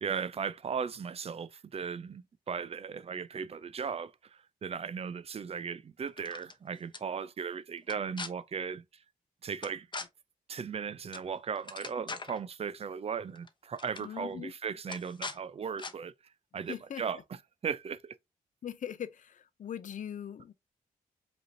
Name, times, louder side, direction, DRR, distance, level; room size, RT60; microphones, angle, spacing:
voice 1, 0.0-8.8 9.4-9.9 10.5-16.1 16.5-17.2 17.6-18.1, right 6 dB, 45° right, 0.5 m, -37 dB
sound 1, 6.1-6.5 6.9-7.0 7.8-8.3 9.6-10.1 11.1-11.3 11.6-12.4 13.4-13.5 13.8-14.1 14.9-15.4 15.8-15.9, left 4 dB, 35° left, 0.8 m, -41 dB
voice 2, 14.0-14.5 16.7-17.2 18.6-20.5, left 9 dB, 60° left, 0.6 m, -41 dB
5.2 x 3.0 x 2.7 m
cardioid pair, 75°, 14 cm